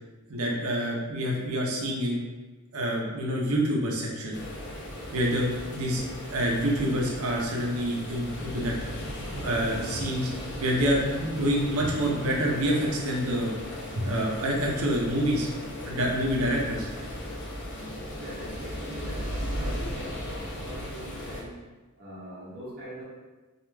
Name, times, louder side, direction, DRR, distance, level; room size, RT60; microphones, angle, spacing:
voice 1, 0.3-2.2 2.7-4.4 5.1-6.0 6.3-8.7 9.3-10.3 10.6-13.5 14.0-15.5 15.8-16.9, equal, 80° right, -2 dB, 0.6 m, -27 dB
sound 1, 4.3-21.4, equal, 55° left, 0.5 m, -37 dB
voice 2, 18.2-21.6 22.0-23.0, equal, 45° right, -8 dB, 0.7 m, -42 dB
2.3 x 2.2 x 3.1 m, 1.2 s
head